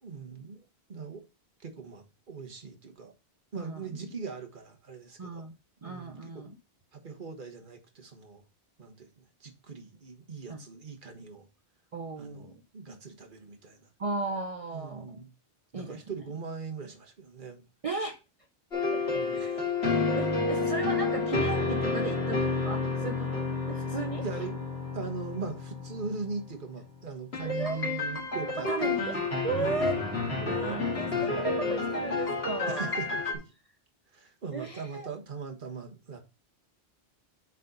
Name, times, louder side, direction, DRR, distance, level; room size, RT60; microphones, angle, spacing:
voice 1, 0.0-1.2 1.6-3.1 3.5-5.5 5.8-6.4 6.9-8.4 8.8-9.1 9.4-11.5 12.2-13.9 14.7-15.3 15.7-17.7 19.1-19.6 24.2-24.7 24.9-29.3 29.5-30.0 30.4-30.6 32.7-33.5 34.1-36.2, right 5 dB, 55° right, 1.6 m, -40 dB
voice 2, 5.2-5.6 5.8-6.5 10.5-10.6 11.9-12.6 14.0-15.2 15.7-16.0 17.8-18.2 18.9-19.0 19.3-19.6 20.2-24.2 27.4-27.8 28.7-29.1 29.4-29.9 30.4-32.9 34.5-35.1, right 3 dB, 40° right, 0.7 m, -35 dB
sound 1, 18.7-26.5 27.3-33.3, left 3 dB, 85° left, 2.1 m, -30 dB
7.4 x 4.0 x 5.4 m
omnidirectional pair, 1.0 m